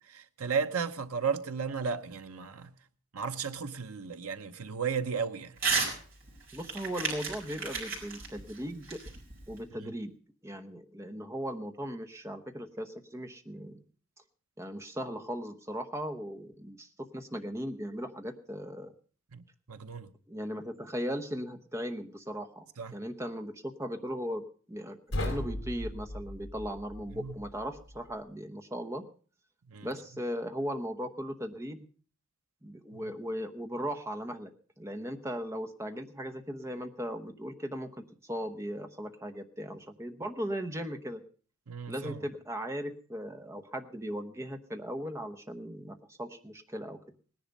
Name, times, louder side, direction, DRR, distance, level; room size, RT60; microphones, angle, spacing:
voice 1, 0.1-2.7 3.1-5.6 9.8-9.9 19.3-19.4 19.7-20.1 22.8-23.0 27.1-27.4 29.7-29.9 32.9-33.0 41.7-42.2, right 6 dB, 85° right, 0.9 m, -34 dB
Crumpling crinkling / Tearing, 5.6-5.9 6.3-9.6, right 4 dB, 45° right, 4.4 m, -33 dB
voice 2, 6.5-9.0 9.5-10.1 10.4-13.8 14.6-18.9 20.3-22.7 22.9-29.0 29.8-31.9 32.6-34.5 34.8-41.2 41.9-47.0, equal, 15° right, 0.9 m, -38 dB
sound 1, 25.1-28.2, left 1 dB, 60° left, 3.2 m, -38 dB
18.0 x 10.5 x 5.3 m
head